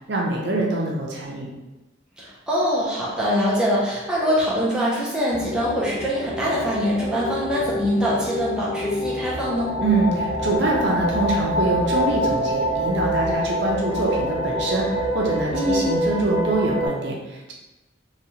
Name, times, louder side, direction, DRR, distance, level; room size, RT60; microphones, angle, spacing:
voice 1, 0.1-1.5 9.8-17.5, right 2 dB, 60° right, -3 dB, 0.6 m, -24 dB
voice 2, 2.2-9.8 15.5-15.9, equal, 5° right, -7 dB, 0.5 m, -23 dB
sound 1, 5.3-16.9, equal, 70° left, 1.0 m, -26 dB
3.0 x 2.3 x 2.7 m, 1.1 s
head